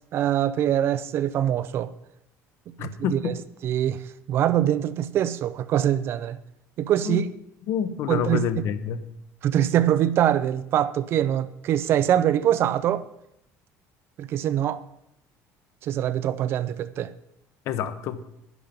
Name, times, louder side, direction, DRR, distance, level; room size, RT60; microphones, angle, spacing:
voice 1, 0.1-1.9 2.8-3.3 3.6-4.0 4.3-6.4 6.8-7.2 8.1-8.5 9.4-13.1 14.2-14.8 15.8-17.1, right 11 dB, 40° right, 0.5 m, -23 dB
voice 2, 2.8-3.3 7.0-7.3 7.7-9.0 17.6-18.2, left 8 dB, 50° left, 0.9 m, -28 dB
11.0 x 10.0 x 5.3 m
cardioid pair, 175°, 6 cm